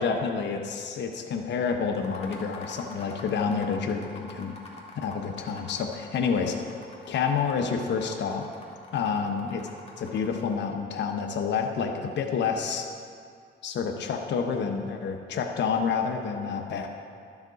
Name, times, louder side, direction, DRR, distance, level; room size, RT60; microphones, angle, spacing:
voice 1, 0.0-4.5 5.0-6.6 7.1-8.4 8.9-9.6 10.0-12.9 13.6-16.9, left 6 dB, 60° left, 3 dB, 0.9 m, -28 dB
sound 1, 1.9-10.6, left 2 dB, 30° left, 1.8 m, -46 dB
12.0 x 7.2 x 3.9 m, 2.3 s
cardioid pair, 90°, 20 cm